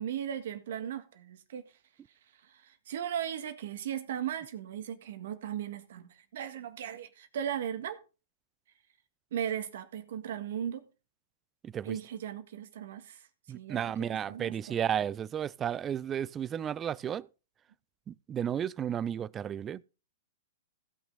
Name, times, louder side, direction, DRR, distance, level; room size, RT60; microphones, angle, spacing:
voice 1, 0.0-1.6 2.4-8.0 9.3-10.9 11.8-13.3 13.5-14.8, right 9 dB, 60° right, 1.6 m, -37 dB
voice 2, 11.6-12.0 13.5-17.3 18.1-19.8, right 9 dB, 20° right, 0.4 m, -33 dB
16.5 x 6.1 x 4.0 m
hypercardioid pair, 115°, 0 cm